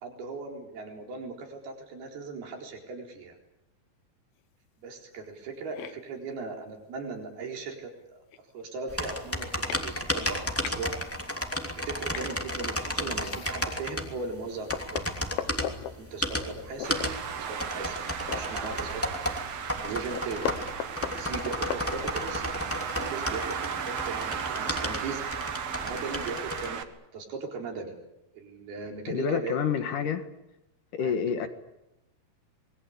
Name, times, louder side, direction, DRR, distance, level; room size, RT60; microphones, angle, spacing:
voice 1, 0.0-3.4 4.8-8.3 8.5-10.9 11.8-15.0 15.9-17.1 17.5-18.0 18.3-19.2 19.8-20.5 21.0-25.2 25.8-26.8 27.1-28.0 28.3-29.6 30.9-31.2, right 4 dB, 80° right, 2 dB, 6.1 m, -38 dB
sound 1, 5.7-5.9 7.4-7.5 8.0-8.1 8.3-8.7 9.2-9.3 9.7-9.8 10.2-10.8 12.1-12.3 13.0-13.8 14.3-14.4 14.7-15.9 16.8-17.1 17.5-17.6 17.9-19.1 19.4-19.5 19.8-22.4, left 10 dB, 80° left, 3.1 m, -37 dB
sound 2, 8.9-26.7, equal, 5° left, 2.1 m, -33 dB
Traffic noise roadway noise, 16.8-26.8, right 7 dB, 55° right, 2.1 m, -35 dB
voice 2, 29.1-30.3 30.9-31.5, left 7 dB, 60° left, 8 dB, 2.9 m, -28 dB
27.5 x 21.5 x 8.6 m, 0.90 s
omnidirectional pair, 4.4 m